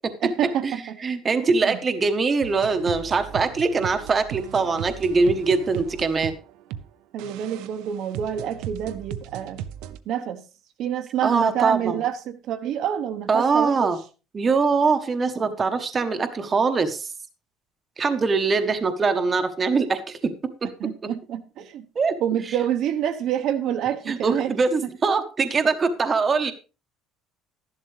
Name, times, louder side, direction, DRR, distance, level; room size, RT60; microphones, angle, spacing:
voice 1, 0.2-1.0 1.6-1.8 7.1-9.6 10.1-10.4 10.8-13.9 20.8-21.9 22.2-24.6, right 10 dB, 50° right, 0.9 m, -27 dB
voice 2, 1.0-6.3 11.2-12.0 13.3-14.0 14.3-17.1 18.0-20.3 22.0-22.2 24.1-26.5, right 4 dB, 20° right, 0.9 m, -22 dB
sound 1, 2.4-6.8 7.2-10.0, right 10 dB, 75° right, 0.8 m, -37 dB
12.5 x 11.0 x 3.2 m
cardioid pair, 170°, 0 cm